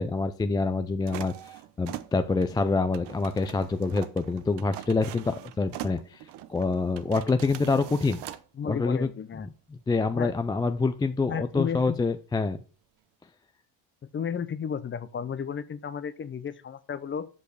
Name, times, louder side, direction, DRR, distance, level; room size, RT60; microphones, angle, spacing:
voice 1, 0.0-1.3 1.8-6.2 6.5-8.2 8.6-9.1 9.4-9.5 9.9-12.6, left 3 dB, 10° left, 0.3 m, -26 dB
sound 1, 1.1-8.5, right 13 dB, 65° right, 0.8 m, -42 dB
voice 2, 8.5-9.5 10.1-10.3 11.3-12.0 14.1-17.3, left 7 dB, 25° left, 0.7 m, -33 dB
6.3 x 5.4 x 6.5 m
cardioid pair, 105°, 44 cm